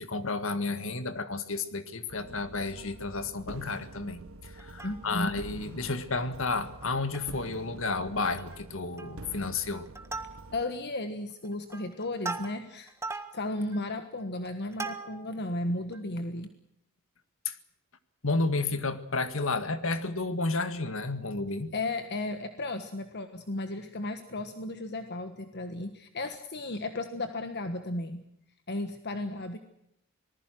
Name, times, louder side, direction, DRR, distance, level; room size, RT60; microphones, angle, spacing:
voice 1, 0.0-9.9 17.5-17.6 18.2-21.7, left 3 dB, 70° left, 10 dB, 1.9 m, -31 dB
sound 1, 2.1-10.6, right 2 dB, 80° right, 1.2 m, -47 dB
Plucked string instrument, 4.6-5.4 5.8-5.9 6.2-6.4 6.8-7.5 7.8-7.9 8.3-8.6 9.0-9.4 9.7-10.8 11.3-15.4 15.9-16.0, right 3 dB, 15° right, 1.6 m, -40 dB
voice 2, 4.8-5.3 10.5-16.5 21.7-28.2 28.7-29.6, left 2 dB, 55° left, 8 dB, 1.4 m, -34 dB
26.0 x 19.5 x 6.2 m, 0.78 s
head